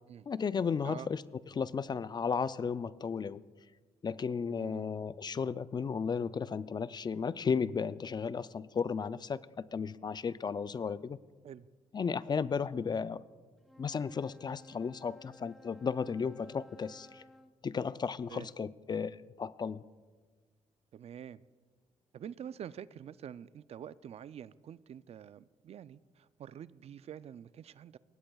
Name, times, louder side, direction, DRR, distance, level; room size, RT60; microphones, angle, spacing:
voice 1, 0.3-1.2 1.5-3.4 4.0-11.2 11.9-13.2 13.8-17.2 17.6-19.9, left 6 dB, 35° left, 0.4 m, -34 dB
voice 2, 4.5-4.9 11.4-11.7 18.3-18.5 20.9-21.4 22.1-28.0, right 9 dB, 55° right, 0.4 m, -47 dB
Wind instrument woodwind instrument, 13.6-17.6, left 1 dB, ahead, 0.7 m, -58 dB
20.5 x 17.5 x 2.3 m
cardioid pair, 85°, 12 cm